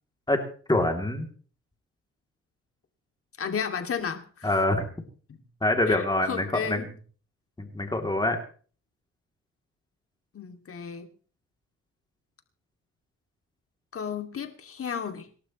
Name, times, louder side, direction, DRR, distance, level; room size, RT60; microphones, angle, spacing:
voice 1, 0.7-1.3 4.4-4.8 5.6-6.8 7.6-8.4, left 1 dB, 15° left, 3.0 m, -25 dB
voice 2, 3.4-4.6 5.3-5.4 5.9-6.9 10.3-11.1 13.9-15.3, left 7 dB, 50° left, 2.6 m, -33 dB
26.5 x 12.0 x 3.2 m
cardioid pair, 90°, 30 cm